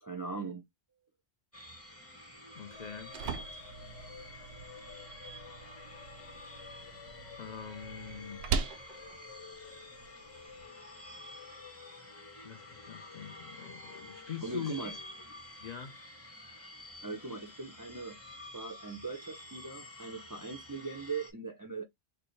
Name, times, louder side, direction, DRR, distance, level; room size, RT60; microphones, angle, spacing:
voice 1, 0.0-0.6 14.4-15.0 17.0-18.2 18.5-21.8, right 4 dB, 30° right, 0.4 m, -40 dB
sound 1, 1.5-21.3, left 1 dB, 15° left, 0.8 m, -50 dB
sound 2, 2.6-15.2, left 7 dB, 90° left, 1.1 m, -54 dB
voice 2, 2.6-3.2 7.4-8.4 12.4-14.8 15.6-16.0, left 8 dB, 55° left, 0.5 m, -43 dB
sound 3, 2.7-10.7, right 5 dB, 85° right, 0.9 m, -41 dB
3.3 x 2.2 x 3.9 m
omnidirectional pair, 1.1 m